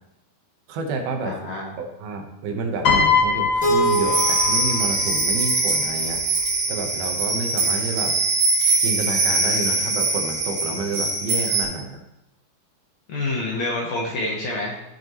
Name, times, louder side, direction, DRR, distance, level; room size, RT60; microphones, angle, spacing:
voice 1, 0.7-1.4 1.8-6.2 6.7-8.2 8.8-12.0, right 3 dB, 75° right, 4 dB, 2.8 m, -29 dB
voice 2, 1.3-1.7 13.1-14.8, left 2 dB, 65° left, -2 dB, 1.9 m, -27 dB
Piano, 2.8-5.2 6.2-6.5, left 5 dB, 45° left, 1.7 m, -22 dB
Keyboard (musical), 3.6-6.5, right 3 dB, 20° left, 1.2 m, -27 dB
sound 1, 3.8-11.6, right 3 dB, 55° right, 3.0 m, -22 dB
15.5 x 5.8 x 3.0 m, 0.89 s
omnidirectional pair, 4.4 m